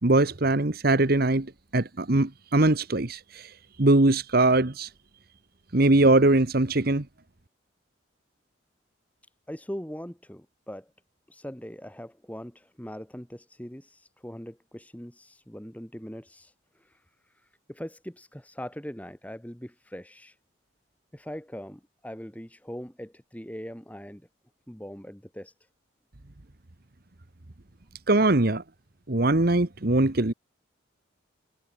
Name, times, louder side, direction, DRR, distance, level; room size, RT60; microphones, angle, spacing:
voice 1, 0.0-3.5 3.8-4.9 5.7-7.1 28.1-28.6 29.1-30.3, right 2 dB, 50° right, 1.3 m, -21 dB
voice 2, 9.5-10.9 11.3-16.5 16.8-17.0 17.7-20.4 21.1-24.2 24.7-25.5, equal, 10° left, 1.8 m, -41 dB
head